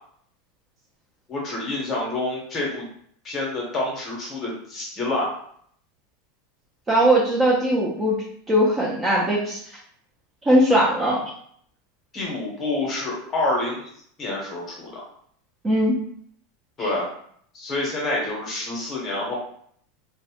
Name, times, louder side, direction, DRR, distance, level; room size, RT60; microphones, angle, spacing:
voice 1, 1.3-2.8 3.2-5.3 12.1-13.8 14.2-15.0 16.8-17.1 17.5-19.3, left 2 dB, 25° left, -2 dB, 0.8 m, -27 dB
voice 2, 6.9-9.6 10.4-11.2 15.6-16.0 16.8-16.9, right 1 dB, 15° right, -5 dB, 0.4 m, -20 dB
2.5 x 2.0 x 2.8 m, 0.64 s
supercardioid pair, 165°, 0 cm